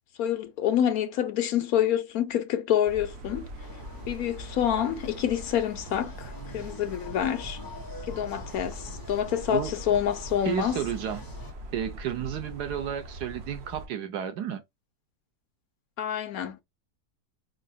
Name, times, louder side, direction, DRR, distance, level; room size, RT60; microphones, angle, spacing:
voice 1, 0.2-3.4 4.1-7.6 8.0-10.8 16.0-16.6, left 10 dB, 60° left, 1.2 m, -27 dB
sound 1, 2.8-13.9, right 1 dB, 45° right, 1.0 m, -42 dB
sound 2, 3.6-11.5, left 1 dB, 15° left, 0.8 m, -45 dB
voice 2, 10.4-11.2 11.7-14.6, right 9 dB, 70° right, 1.3 m, -32 dB
4.5 x 3.9 x 2.2 m
omnidirectional pair, 1.9 m